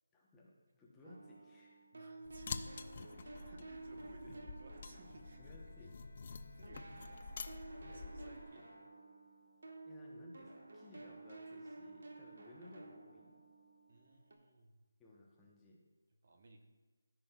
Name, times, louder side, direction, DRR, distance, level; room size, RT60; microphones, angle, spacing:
voice 1, 0.1-1.8 3.1-3.7 4.1-4.3 5.2-5.9 7.0-7.1 7.8-8.6 9.8-13.4 15.0-15.8, left 1 dB, 10° left, -4 dB, 0.8 m, -59 dB
sound 1, 1.0-6.3 6.6-14.3, right 2 dB, 65° right, 1.2 m, -53 dB
voice 2, 1.9-5.9 6.3-8.7 13.9-14.7 16.2-16.6, right 2 dB, 45° right, 4 dB, 0.9 m, -60 dB
sound 2, 2.3-8.4, left 4 dB, 35° left, 0.4 m, -48 dB
Bowed string instrument, 5.1-9.5, left 2 dB, 75° left, 1.8 m, -66 dB
14.0 x 6.1 x 2.3 m, 1.2 s
figure-of-eight pair, 170°, 0 cm